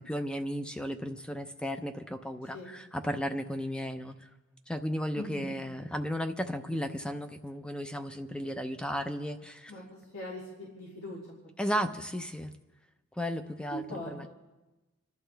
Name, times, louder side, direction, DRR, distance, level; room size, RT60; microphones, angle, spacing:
voice 1, 0.0-4.1 4.7-9.7 11.6-12.5 13.2-14.3, equal, 5° left, 8 dB, 0.6 m, -34 dB
voice 2, 5.1-5.6 9.7-11.2 11.8-11.9 13.7-14.3, equal, 75° left, -6 dB, 3.9 m, -41 dB
29.5 x 12.0 x 3.4 m, 1.1 s
head